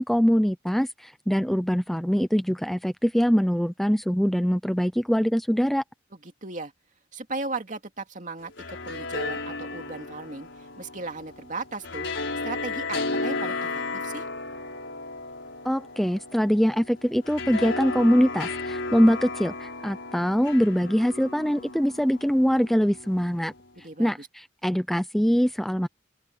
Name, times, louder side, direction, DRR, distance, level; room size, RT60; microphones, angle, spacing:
voice 1, 0.0-5.8 15.6-23.5 23.8-25.9, equal, ahead, 0.4 m, -23 dB
voice 2, 6.2-6.7 7.1-14.3 23.8-24.3, right 3 dB, 40° right, 2.6 m, -37 dB
sound 1, 8.4-23.6, left 3 dB, 70° left, 4.8 m, -34 dB
open air
head